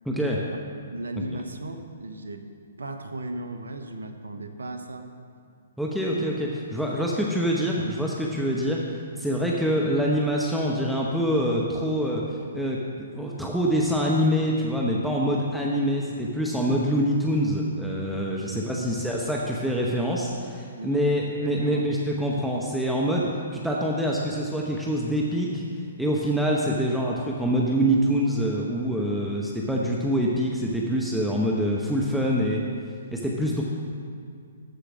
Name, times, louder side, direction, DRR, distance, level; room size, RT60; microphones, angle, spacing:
voice 1, 0.1-0.4 5.8-12.2 12.5-25.6 26.0-32.7 33.1-33.6, equal, ahead, -3 dB, 0.9 m, -25 dB
voice 2, 0.9-2.4 2.8-5.1 18.8-19.0 20.8-21.3 21.6-21.9, right 1 dB, 75° right, 7 dB, 1.0 m, -36 dB
13.0 x 5.0 x 6.3 m, 2.4 s
figure-of-eight pair, 125°, 0 cm